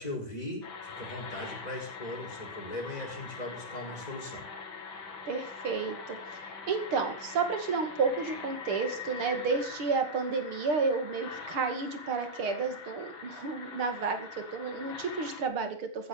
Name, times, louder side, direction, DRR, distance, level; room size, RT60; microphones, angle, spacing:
voice 1, 0.0-4.4, left 1 dB, 15° left, 0 dB, 5.3 m, -39 dB
sound 1, 0.6-15.5, left 5 dB, 65° left, 2.8 m, -43 dB
voice 2, 5.3-6.2 6.7-16.1, right 4 dB, 80° right, 7 dB, 3.2 m, -31 dB
15.0 x 9.7 x 6.6 m, 0.43 s
omnidirectional pair, 2.3 m